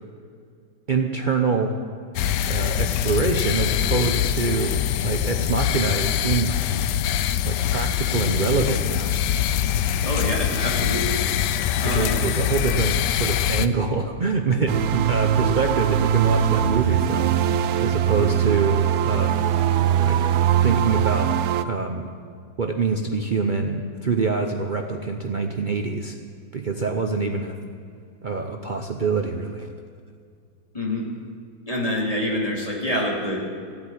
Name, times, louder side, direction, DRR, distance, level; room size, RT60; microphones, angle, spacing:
voice 1, 0.9-1.8 2.5-4.8 5.0-6.6 7.4-9.2 11.8-17.3 17.8-19.4 20.0-20.2 20.6-21.3 21.6-22.1 22.6-26.2 26.5-27.5 28.2-29.7, right 4 dB, 90° right, 4 dB, 0.4 m, -25 dB
sound 1, 2.2-13.7, left 10 dB, 75° left, 1.2 m, -23 dB
voice 2, 10.0-11.2 11.8-12.2 30.7-31.1 31.7-33.4, left 1 dB, 20° left, -2 dB, 2.5 m, -26 dB
sound 2, 14.7-21.6, right 9 dB, 70° right, 0.9 m, -21 dB
15.5 x 8.3 x 8.9 m, 2.3 s
omnidirectional pair, 2.0 m